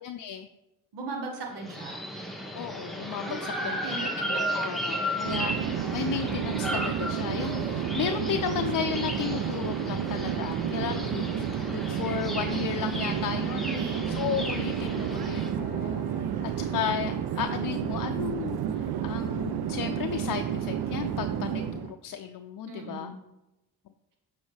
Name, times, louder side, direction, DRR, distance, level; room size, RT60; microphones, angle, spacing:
voice 1, 0.0-0.5 2.5-13.7 14.1-16.1 16.4-23.1, left 9 dB, 55° left, 6 dB, 0.5 m, -34 dB
voice 2, 0.9-2.0 3.2-4.1 13.6-14.0 14.5-14.6 22.6-23.2, right 3 dB, 85° right, 1 dB, 1.4 m, -37 dB
sound 1, 1.5-15.5, equal, ahead, 1.4 m, -35 dB
Conversation / Chatter / Fixed-wing aircraft airplane, 5.2-21.9, right 9 dB, 70° right, 0.6 m, -31 dB
sound 2, 12.2-17.4, right 1 dB, 20° right, 1.7 m, -47 dB
7.8 x 4.8 x 3.3 m, 0.97 s
supercardioid pair, 60°, 40 cm